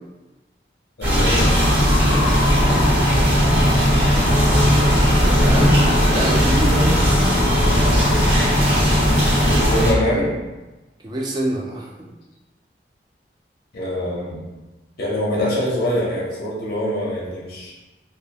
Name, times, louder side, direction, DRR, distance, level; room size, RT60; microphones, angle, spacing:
voice 1, 1.0-1.6 9.5-10.3 13.7-14.4 15.0-17.7, left 1 dB, 55° left, -4 dB, 0.6 m, -24 dB
sound 1, 1.0-9.9, equal, 90° right, 1.1 m, -17 dB
sound 2, 2.5-6.9, right 1 dB, 45° right, 0.8 m, -30 dB
voice 2, 5.2-5.8 6.1-7.2 11.0-11.9, right 1 dB, 25° right, -2 dB, 0.3 m, -26 dB
2.3 x 2.1 x 2.7 m, 1.1 s
head